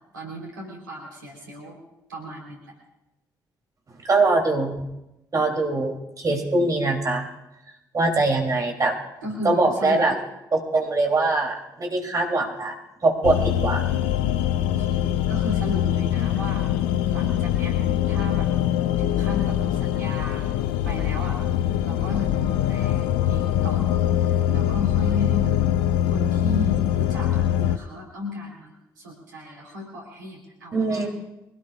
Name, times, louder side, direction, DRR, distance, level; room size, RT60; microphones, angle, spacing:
voice 1, 0.1-1.8 2.1-2.8 8.1-8.4 9.2-10.0 13.3-13.5 14.8-16.7 17.1-17.8 18.1-18.5 19.0-20.4 20.8-21.4 21.8-25.5 26.1-31.1, left 2 dB, 80° right, -1 dB, 3.8 m, -35 dB
voice 2, 4.0-4.7 5.3-7.3 7.9-8.9 9.4-10.1 10.5-12.7 13.0-14.1 30.7-31.1, right 2 dB, 35° right, 1 dB, 3.1 m, -22 dB
sound 1, 13.2-27.8, left 11 dB, 65° left, 0.6 m, -23 dB
25.0 x 18.0 x 2.5 m, 0.92 s
figure-of-eight pair, 40°, 10 cm